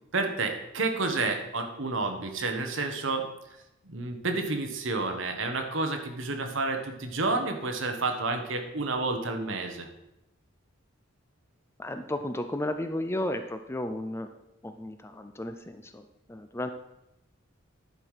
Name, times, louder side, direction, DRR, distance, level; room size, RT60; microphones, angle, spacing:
voice 1, 0.1-3.3 3.8-9.9, right 3 dB, 65° right, 5 dB, 1.3 m, -30 dB
voice 2, 11.8-14.3 14.6-16.7, left 1 dB, 10° left, 8 dB, 0.4 m, -34 dB
11.0 x 4.9 x 5.7 m, 0.89 s
head